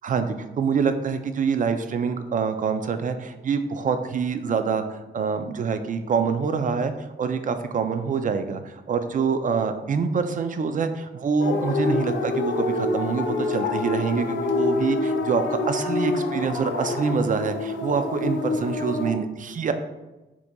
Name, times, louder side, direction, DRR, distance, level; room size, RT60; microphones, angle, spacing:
voice 1, 0.0-19.7, right 5 dB, 45° right, 8 dB, 0.4 m, -26 dB
sound 1, 11.4-19.1, left 3 dB, 85° left, 0.5 m, -26 dB
4.4 x 3.9 x 2.2 m, 1.1 s
cardioid pair, 95°, 19 cm